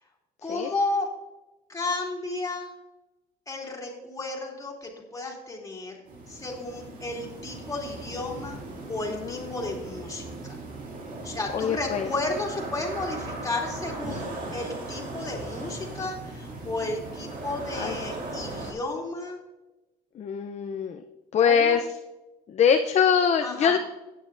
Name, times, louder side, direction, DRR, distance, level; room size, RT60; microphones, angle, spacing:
voice 1, 0.4-1.1 1.7-2.7 3.5-6.0 6.3-8.6 8.9-10.6 11.2-19.4 21.4-21.8 23.4-23.8, left 2 dB, 20° left, -1 dB, 2.9 m, -33 dB
sound 1, 6.1-18.7, right 2 dB, 50° right, 2.6 m, -38 dB
voice 2, 9.1-9.7 11.5-12.1 17.7-17.9 20.2-21.0 21.3-21.8 22.5-23.8, left 7 dB, 40° left, 6 dB, 0.6 m, -23 dB
15.5 x 9.4 x 2.6 m, 1.1 s
cardioid pair, 110°, 17 cm